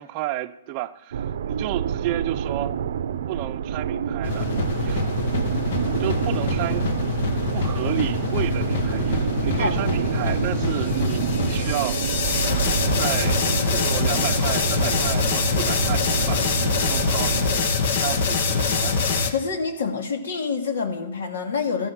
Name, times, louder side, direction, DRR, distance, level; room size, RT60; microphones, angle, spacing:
voice 1, 0.0-2.8 3.3-4.5 4.8-5.1 6.0-6.9 7.5-12.0 13.0-13.4 13.7-16.4 16.8-17.3 18.0-19.0, right 15 dB, 30° right, 0.6 m, -31 dB
sound 1, 1.1-17.6, right 8 dB, 75° right, 0.6 m, -27 dB
sound 2, 4.2-19.3, left 5 dB, 60° left, 1.4 m, -24 dB
voice 2, 19.3-21.9, left 5 dB, 75° left, 2.4 m, -26 dB
14.0 x 12.0 x 6.1 m
hypercardioid pair, 160°, 0 cm